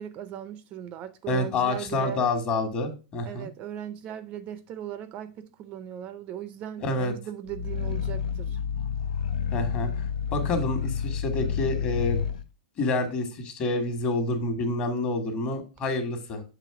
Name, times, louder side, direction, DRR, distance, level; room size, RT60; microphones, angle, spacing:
voice 1, 0.0-2.2 3.3-8.6, right 10 dB, 35° right, 0.4 m, -38 dB
voice 2, 1.3-3.5 6.8-7.1 9.5-9.9 10.3-12.3 12.8-16.4, left 2 dB, 30° left, 1.4 m, -28 dB
Growling, 7.5-12.4, left 7 dB, 85° left, 0.5 m, -29 dB
6.9 x 3.1 x 4.7 m
hypercardioid pair, 140°, 4 cm